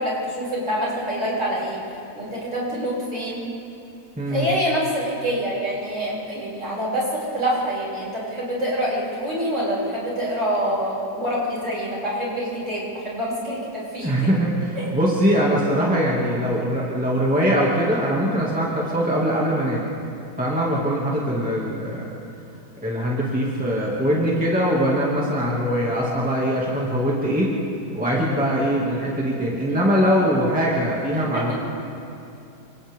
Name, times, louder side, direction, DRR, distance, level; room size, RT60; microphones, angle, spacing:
voice 1, 0.0-1.8 2.2-3.4 4.3-14.3 14.8-14.9 23.8-23.9 31.1-31.5, equal, 45° right, -7 dB, 7.3 m, -26 dB
voice 2, 4.2-4.5 14.0-19.8 20.4-22.1 22.8-27.5 27.9-31.5, equal, 5° right, -5 dB, 2.5 m, -22 dB
29.5 x 26.5 x 3.8 m, 2.7 s
omnidirectional pair, 1.7 m